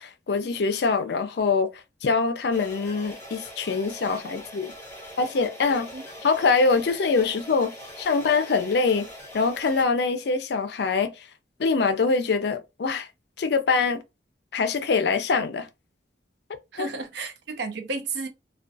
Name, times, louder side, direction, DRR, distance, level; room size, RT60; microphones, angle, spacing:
voice 1, 0.0-1.7 2.0-4.7 5.2-5.9 6.2-7.7 8.0-9.1 9.3-11.1 11.6-13.1 13.4-14.0 14.5-15.7 16.8-16.9, left 4 dB, 60° left, 0.4 m, -24 dB
sound 1, 2.5-9.8, left 1 dB, 15° left, 0.9 m, -42 dB
voice 2, 16.7-18.3, right 3 dB, 65° right, 0.5 m, -32 dB
2.3 x 2.2 x 2.5 m
head